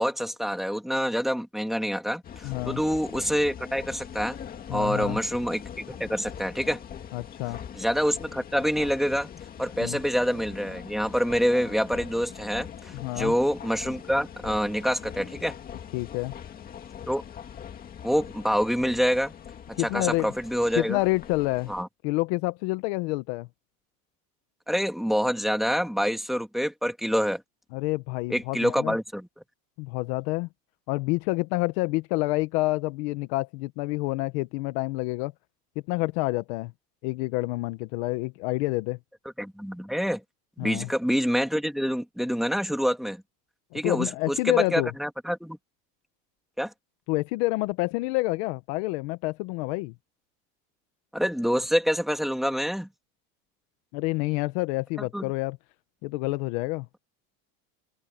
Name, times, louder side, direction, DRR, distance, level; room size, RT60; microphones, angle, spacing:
voice 1, 0.0-4.4 4.7-6.8 7.7-9.3 9.6-15.5 17.1-17.2 18.0-19.3 19.8-21.0 21.7-21.9 24.7-27.4 28.3-29.3 39.4-40.2 40.6-43.2 43.7-45.6 46.6-46.7 51.1-52.9 55.1-55.2, equal, ahead, 2.1 m, -26 dB
sound 1, 2.2-21.8, left 8 dB, 20° left, 2.1 m, -42 dB
voice 2, 2.4-2.8 4.7-5.2 7.1-7.6 9.8-10.0 12.9-13.3 15.9-16.3 19.8-20.3 20.8-21.7 22.0-23.5 27.7-29.0 29.8-30.5 30.9-35.3 35.9-36.7 37.0-39.0 40.6-40.9 43.7-44.9 47.1-49.9 53.9-55.6 56.0-56.9, left 22 dB, 55° left, 1.0 m, -28 dB
open air
cardioid pair, 175°, 41 cm